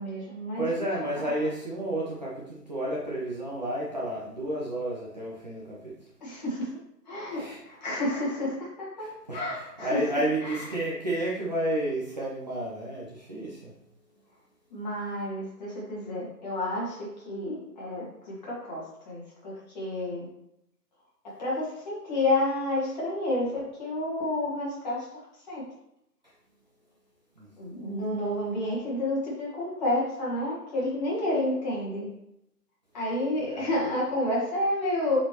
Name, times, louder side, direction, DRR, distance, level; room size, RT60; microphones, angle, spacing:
voice 1, 0.0-0.9 1.3-1.5 6.2-6.7 7.1-10.8 14.7-20.3 21.2-25.6 27.6-32.1 32.9-35.2, left 1 dB, 25° left, -5 dB, 1.9 m, -30 dB
voice 2, 0.6-5.9 7.3-7.6 9.0-13.7 27.4-27.5 33.5-33.7, right 1 dB, 25° right, -6 dB, 0.7 m, -31 dB
7.6 x 4.3 x 3.0 m, 0.79 s
figure-of-eight pair, 155°, 49 cm